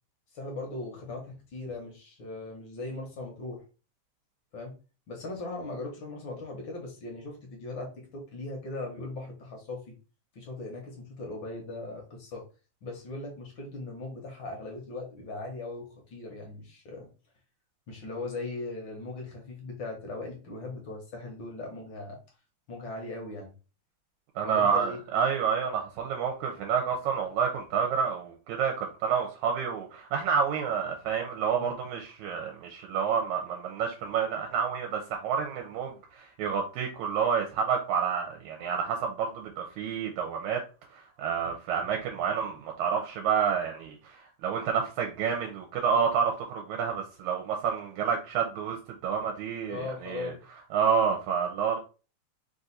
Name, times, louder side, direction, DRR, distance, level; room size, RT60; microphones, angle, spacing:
voice 1, 0.3-3.6 4.5-4.7 5.1-9.9 10.3-12.4 12.8-17.1 17.9-22.2 22.7-23.5 24.4-25.0 31.6-31.8 49.7-50.4, left 2 dB, 60° left, 1.3 m, -39 dB
voice 2, 24.4-40.6 40.9-48.8 49.0-50.3 50.7-51.8, right 6 dB, 80° right, 2.0 m, -29 dB
4.7 x 2.5 x 4.0 m
omnidirectional pair, 3.5 m